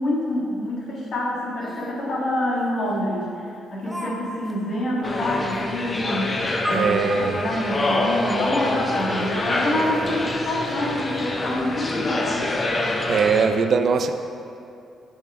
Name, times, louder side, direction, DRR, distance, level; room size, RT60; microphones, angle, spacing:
voice 1, 0.0-6.4 6.7-12.5, left 1 dB, 55° left, -4 dB, 1.7 m, -26 dB
Laughter, 1.6-2.0 2.9-3.0 3.8-4.2 4.4-4.5 5.0-5.1 5.5-5.6 7.6-7.7 8.0-8.1 9.0-9.3 9.6-11.2, equal, 15° right, 1.0 m, -38 dB
sound 1, 5.0-13.5, left 2 dB, 35° left, 0.8 m, -26 dB
sound 2, 6.6-11.2, right 1 dB, 30° right, 1.6 m, -35 dB
voice 2, 6.7-7.4 13.1-14.1, right 5 dB, 55° right, 8 dB, 0.4 m, -21 dB
6.9 x 4.8 x 4.5 m, 2.6 s
hypercardioid pair, 45°, 0 cm